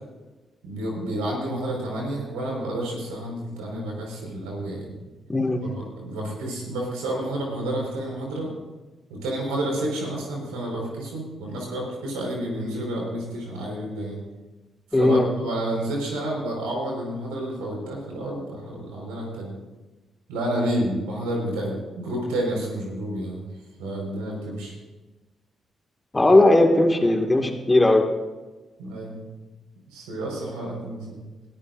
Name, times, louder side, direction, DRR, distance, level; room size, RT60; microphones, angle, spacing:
voice 1, 0.6-5.0 5.6-8.5 9.1-14.2 14.9-19.5 20.3-23.5 23.8-24.7 28.8-29.2 29.9-31.2, right 1 dB, 90° right, -2 dB, 4.9 m, -30 dB
voice 2, 5.3-5.6 14.9-15.3 26.1-28.0, left 2 dB, 20° left, 4 dB, 2.0 m, -18 dB
21.0 x 13.5 x 2.6 m, 1.2 s
supercardioid pair, 50°, 0 cm